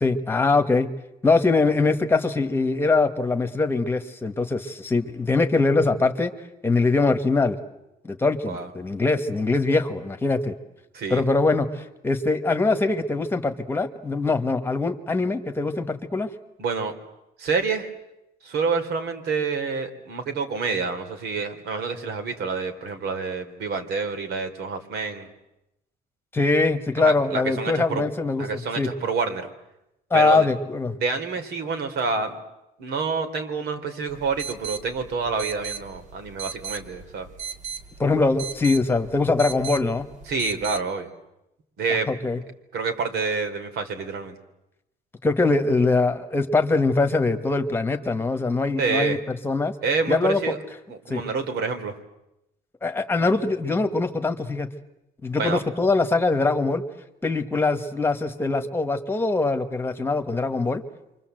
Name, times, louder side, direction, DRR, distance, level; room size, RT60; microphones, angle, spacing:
voice 1, 0.0-0.9 1.2-6.3 6.6-7.6 8.0-10.5 11.1-16.3 26.3-28.5 28.8-28.9 30.1-30.9 38.0-40.1 42.1-42.4 45.2-49.2 49.4-49.7 50.1-50.4 51.1-51.2 52.8-54.7 55.2-56.8 57.2-60.8, left 3 dB, 15° left, 7 dB, 1.5 m, -22 dB
voice 2, 16.6-16.9 17.4-17.9 18.4-25.3 27.0-28.1 28.4-29.5 30.1-30.5 31.0-32.4 32.8-37.3 40.3-41.1 41.8-42.1 42.7-44.3 48.8-49.2 49.8-50.6 50.9-51.9 55.3-55.6, right 4 dB, 80° right, 7 dB, 3.3 m, -27 dB
sound 1, 34.1-40.8, right 7 dB, 50° right, 2.5 m, -37 dB
28.5 x 24.5 x 7.9 m, 0.90 s
cardioid pair, 165°, 17 cm